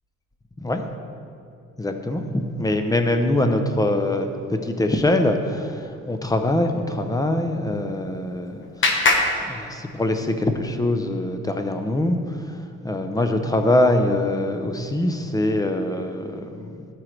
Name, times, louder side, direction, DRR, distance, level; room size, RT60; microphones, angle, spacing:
voice 1, 1.8-8.6 9.5-12.2 12.8-16.8, left 1 dB, 10° left, 6 dB, 0.7 m, -23 dB
Clapping, 7.7-10.3, left 2 dB, 40° left, 1.0 m, -25 dB
12.5 x 4.6 x 3.3 m, 2.4 s
cardioid pair, 90°, 30 cm